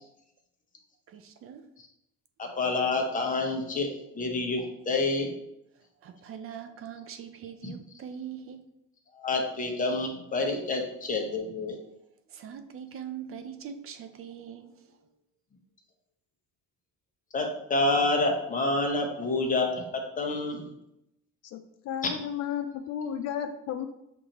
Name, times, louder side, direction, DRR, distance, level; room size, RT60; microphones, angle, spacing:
voice 1, 1.1-1.6 6.0-8.6 12.3-14.7, right 8 dB, 45° right, 8 dB, 0.4 m, -42 dB
voice 2, 2.4-3.9 4.1-5.3 7.6-7.7 9.1-11.8 17.3-20.7, left 2 dB, 25° left, 2 dB, 0.9 m, -28 dB
voice 3, 21.4-23.9, left 9 dB, 55° left, 7 dB, 0.4 m, -33 dB
6.5 x 2.6 x 2.9 m, 0.82 s
cardioid pair, 125°, 31 cm